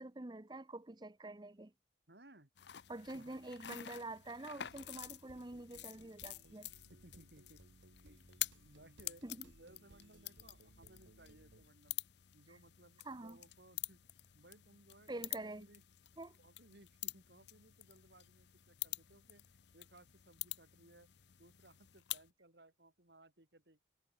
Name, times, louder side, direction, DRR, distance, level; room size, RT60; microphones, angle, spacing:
voice 1, 0.0-1.7 2.9-6.7 9.2-9.5 13.0-13.4 15.1-15.7 16.2-16.4, right 2 dB, 20° right, 0.8 m, -47 dB
voice 2, 2.1-2.5 3.1-3.9 6.9-7.6 8.0-8.3 8.6-12.0 12.3-14.0 14.3-15.8 16.4-21.1 21.4-23.8, right 1 dB, 60° right, 3.2 m, -63 dB
sound 1, 2.6-22.3, left 15 dB, 65° left, 0.7 m, -48 dB
sound 2, 4.6-11.7, right 2 dB, 90° right, 1.7 m, -64 dB
head